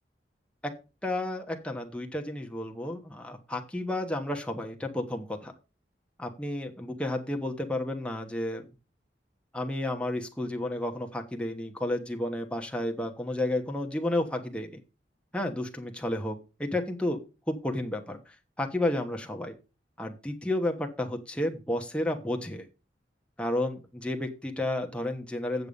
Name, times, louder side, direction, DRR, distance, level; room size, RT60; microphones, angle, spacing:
voice 1, 1.0-5.5 6.2-8.7 9.5-14.8 15.3-17.2 17.5-19.5 20.0-22.7 23.4-25.7, left 1 dB, 5° left, 3 dB, 1.2 m, -32 dB
8.3 x 6.8 x 5.3 m, 0.30 s
head